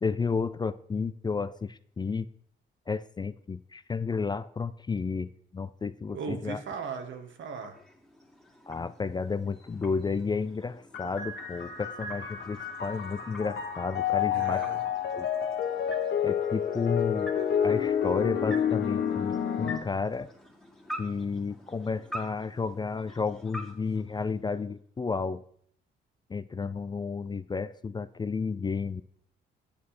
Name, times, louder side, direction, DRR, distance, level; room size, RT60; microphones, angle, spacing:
voice 1, 0.0-2.3 2.9-6.6 8.7-14.7 15.1-15.3 16.2-17.3 17.6-20.3 21.0-25.4 26.3-29.0, left 4 dB, 20° left, 15 dB, 0.4 m, -32 dB
voice 2, 6.1-7.8 14.3-14.8, right 5 dB, 70° right, 6 dB, 1.6 m, -37 dB
sound 1, 7.1-24.8, equal, 5° left, 1.9 m, -47 dB
sound 2, 10.9-19.8, left 8 dB, 65° left, 1.2 m, -29 dB
8.6 x 7.3 x 4.3 m, 0.62 s
cardioid pair, 90°, 20 cm